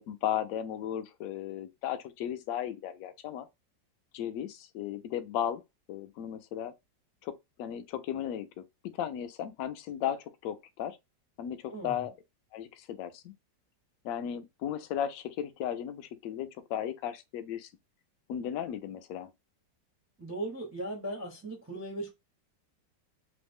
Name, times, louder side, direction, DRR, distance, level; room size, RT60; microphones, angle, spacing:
voice 1, 0.0-3.5 4.1-5.6 5.9-6.7 7.2-8.6 8.9-11.0 11.4-12.1 12.5-13.3 14.0-17.7 18.3-19.3, left 10 dB, 80° left, 0.7 m, -35 dB
voice 2, 11.7-12.0 20.2-22.1, right 2 dB, 20° right, 0.3 m, -38 dB
3.2 x 2.1 x 3.4 m
omnidirectional pair, 2.0 m